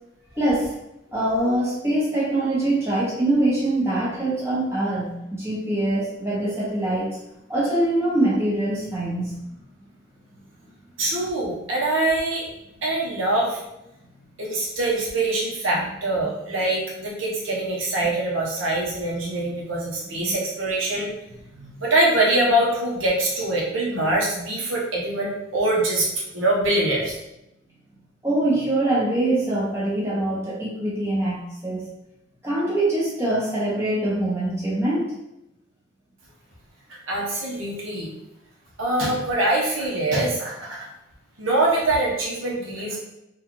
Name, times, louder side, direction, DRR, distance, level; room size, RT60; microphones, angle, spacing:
voice 1, 0.4-0.8 1.1-7.2 7.5-9.4 15.7-15.9 18.0-18.1 20.1-20.4 21.5-21.7 28.2-31.8 32.4-35.1, right 1 dB, 15° right, -8 dB, 1.1 m, -24 dB
voice 2, 11.0-12.5 12.8-13.6 14.4-21.1 21.8-26.1 26.3-27.1 37.1-38.1 38.8-40.9 41.4-43.0, right 2 dB, 80° right, -3 dB, 1.0 m, -23 dB
3.9 x 2.5 x 3.0 m, 0.87 s
head